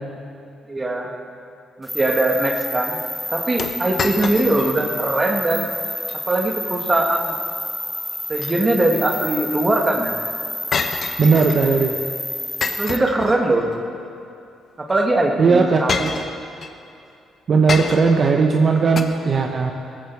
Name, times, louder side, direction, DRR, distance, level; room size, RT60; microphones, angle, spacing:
voice 1, 0.7-1.1 1.8-3.0 3.3-5.7 6.3-7.4 8.3-10.2 12.8-13.7 14.8-16.0, right 2 dB, 25° right, 2 dB, 1.9 m, -21 dB
sound 1, 1.9-13.0, left 1 dB, 5° left, 0.5 m, -29 dB
sound 2, 3.6-4.8 5.1-5.2 5.9-6.2 8.1-9.0 10.7-11.7 12.6-13.8 14.9-15.1 15.9-16.7 17.7-18.3 19.0-19.1, left 5 dB, 50° left, 1.0 m, -28 dB
voice 2, 11.2-11.9 15.4-16.1 17.5-19.7, right 4 dB, 50° right, 2 dB, 1.0 m, -17 dB
18.0 x 14.0 x 4.7 m, 2.5 s
cardioid pair, 90°, 0 cm